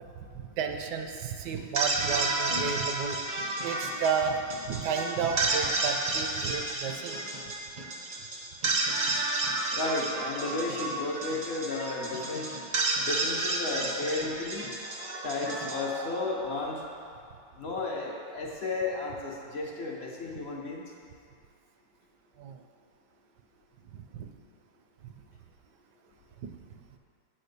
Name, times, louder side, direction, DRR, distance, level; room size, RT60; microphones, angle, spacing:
voice 1, 0.3-3.2 3.6-4.4 4.6-7.2 22.4-22.6 23.9-24.3 25.0-25.1, right 6 dB, 70° right, 5 dB, 1.1 m, -32 dB
sound 1, 1.6-16.8, right 2 dB, 50° right, 0.5 m, -31 dB
voice 2, 9.7-12.5 13.0-14.6 15.2-16.8 17.6-20.8, left 3 dB, 50° left, -2 dB, 0.7 m, -33 dB
8.6 x 4.4 x 6.6 m, 2.3 s
omnidirectional pair, 2.1 m